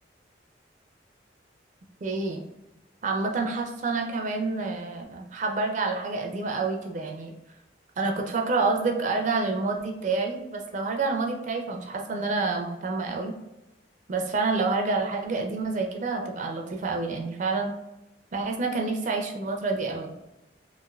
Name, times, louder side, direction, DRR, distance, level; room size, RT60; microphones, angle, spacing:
voice 1, 2.0-2.4 3.0-7.3 8.0-13.3 14.1-17.7 18.3-20.1, right 3 dB, 45° right, 2 dB, 0.4 m, -28 dB
3.0 x 2.9 x 2.3 m, 0.95 s
head